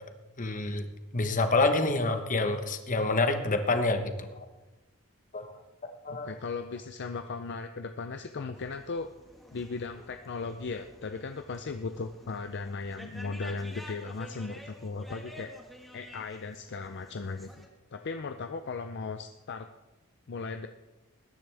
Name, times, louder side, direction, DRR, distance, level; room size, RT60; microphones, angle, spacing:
voice 1, 0.4-0.9 1.1-4.5 5.3-5.5 5.8-6.3, left 2 dB, 35° left, 7 dB, 1.1 m, -27 dB
voice 2, 6.2-9.1 9.5-15.5 15.9-19.7 20.3-20.7, left 4 dB, 50° left, 7 dB, 0.5 m, -37 dB
sound 1, 8.5-17.7, equal, ahead, 1.5 m, -50 dB
20.0 x 10.5 x 3.4 m, 1.1 s
head